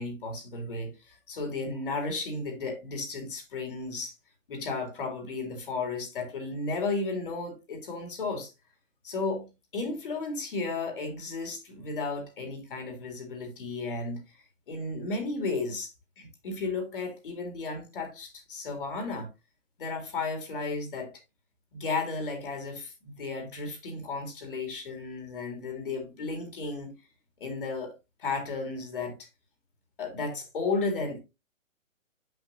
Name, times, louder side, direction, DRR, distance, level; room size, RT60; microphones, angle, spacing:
voice 1, 0.0-4.1 4.5-8.5 9.0-19.3 19.8-21.1 21.7-26.9 27.4-29.2 30.0-31.2, left 3 dB, 40° left, 2.3 m, -34 dB
7.1 x 6.0 x 2.9 m
hypercardioid pair, 180°, 40 cm